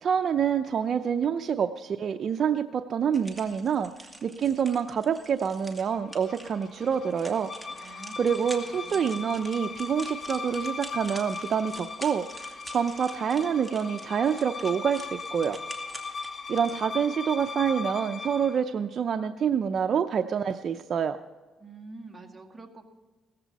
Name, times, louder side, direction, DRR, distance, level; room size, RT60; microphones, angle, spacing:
voice 1, 0.0-7.5 7.8-15.6 16.5-21.2, right 7 dB, 50° right, 6 dB, 0.6 m, -27 dB
sound 1, 3.1-16.8, right 1 dB, ahead, 2.2 m, -46 dB
sound 2, 5.9-18.6, left 4 dB, 40° left, 1.4 m, -39 dB
voice 2, 7.7-8.3 8.6-9.2 21.6-22.8, right 3 dB, 20° right, 2 dB, 2.1 m, -47 dB
17.0 x 14.5 x 4.1 m, 1.3 s
cardioid pair, 110°, 0 cm